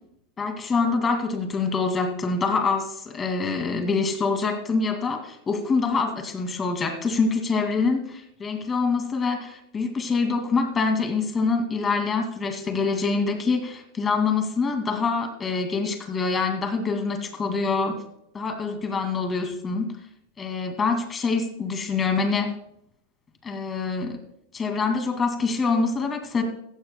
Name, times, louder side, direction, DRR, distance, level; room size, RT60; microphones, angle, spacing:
voice 1, 0.4-18.0 18.3-19.9 20.4-22.5 23.4-24.2 24.5-26.4, left 4 dB, 20° left, 5 dB, 2.3 m, -25 dB
15.0 x 15.0 x 2.2 m, 0.77 s
supercardioid pair, 140°, 0 cm